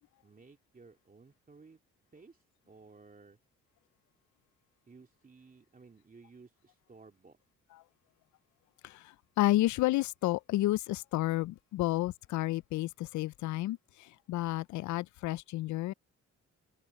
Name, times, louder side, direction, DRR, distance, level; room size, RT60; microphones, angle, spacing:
voice 1, 0.2-1.8 2.1-3.4 4.9-7.4, right 4 dB, 30° right, 2.9 m, -57 dB
voice 2, 8.8-15.9, left 16 dB, 70° left, 0.4 m, -31 dB
cardioid pair, 90°, 30 cm